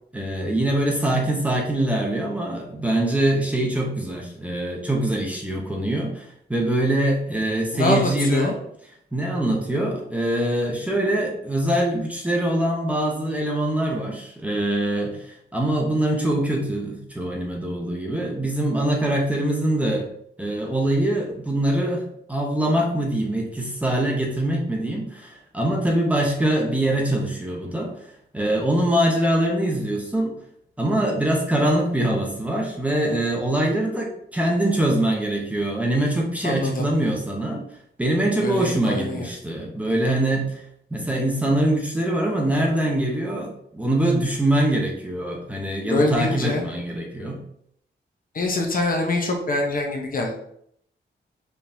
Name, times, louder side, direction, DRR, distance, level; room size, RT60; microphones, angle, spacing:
voice 1, 0.1-8.6 9.1-20.1 20.4-27.9 28.3-30.3 30.8-37.6 38.0-40.6 40.9-47.4, right 1 dB, 5° right, -1 dB, 0.8 m, -23 dB
voice 2, 7.7-8.5 36.4-36.9 38.4-39.3 45.9-46.6 48.3-50.4, left 2 dB, 45° left, 2 dB, 0.7 m, -24 dB
4.5 x 3.5 x 2.6 m, 0.70 s
wide cardioid pair, 135°, 19 cm